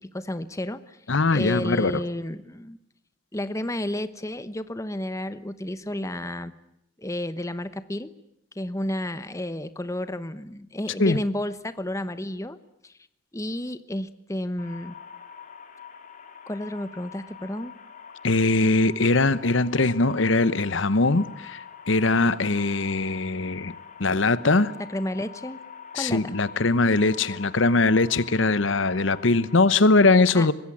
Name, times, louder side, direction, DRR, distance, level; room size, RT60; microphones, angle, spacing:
voice 1, 0.1-1.0 1.3-2.8 3.3-6.5 7.0-8.1 8.6-12.6 12.8-12.9 13.3-14.9 16.5-17.7 24.9-25.6 25.9-26.3 30.3-30.5, left 1 dB, 15° left, 1.0 m, -31 dB
voice 2, 1.1-2.0 11.0-11.2 18.2-23.7 24.0-24.7 25.9-30.5, left 3 dB, 75° left, 1.0 m, -21 dB
sound 1, 14.6-29.6, left 7 dB, 40° left, 3.5 m, -44 dB
25.0 x 21.0 x 9.9 m
head